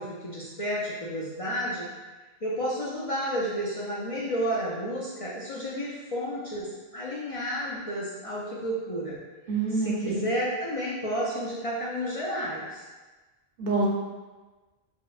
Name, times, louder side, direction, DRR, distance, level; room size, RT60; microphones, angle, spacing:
voice 1, 0.0-1.9 2.4-9.2 9.7-12.8, equal, 55° left, -6 dB, 0.4 m, -31 dB
voice 2, 9.5-10.2 13.6-13.9, right 3 dB, 50° right, -4 dB, 0.8 m, -26 dB
4.5 x 2.1 x 2.4 m, 1.2 s
omnidirectional pair, 1.1 m